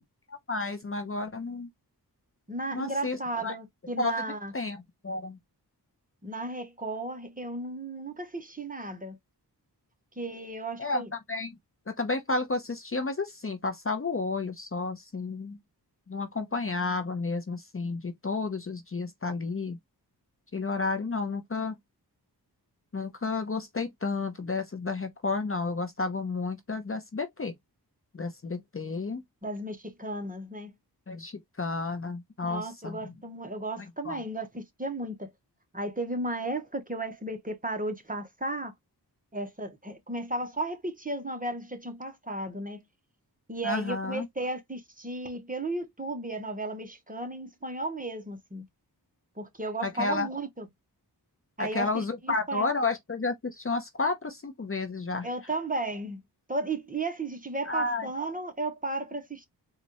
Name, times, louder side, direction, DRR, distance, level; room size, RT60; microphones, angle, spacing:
voice 1, 0.3-1.7 2.7-3.6 4.0-4.2 4.5-4.8 5.0-5.4 10.8-11.6 11.9-15.6 16.1-19.8 20.5-21.8 22.9-27.5 28.1-29.2 31.1-33.0 34.0-34.2 43.6-44.3 49.8-50.3 51.6-55.3 57.6-58.1, left 3 dB, 35° left, 0.7 m, -31 dB
voice 2, 2.5-4.5 6.2-9.2 10.2-11.1 29.4-30.7 32.4-35.3 35.7-38.7 39.3-42.8 43.5-48.6 49.4-50.7 51.6-52.7 55.2-56.2 56.5-59.5, right 2 dB, 20° right, 1.1 m, -34 dB
4.1 x 2.5 x 3.0 m
wide cardioid pair, 80°, 40 cm